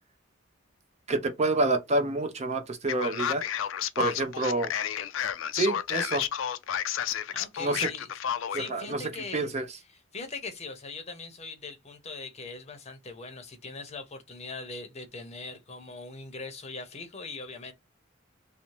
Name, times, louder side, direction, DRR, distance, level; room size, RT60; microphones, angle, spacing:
voice 1, 1.1-3.4 4.0-4.7 5.5-6.2 7.6-7.9 8.5-9.0 9.3-9.7, right 2 dB, 35° right, 0.5 m, -28 dB
Male speech man speaking, 2.9-8.7, left 10 dB, 70° left, 0.3 m, -31 dB
voice 2, 7.3-8.1 8.5-9.5 9.9-17.7, left 3 dB, 35° left, 0.7 m, -41 dB
2.7 x 2.1 x 3.0 m
head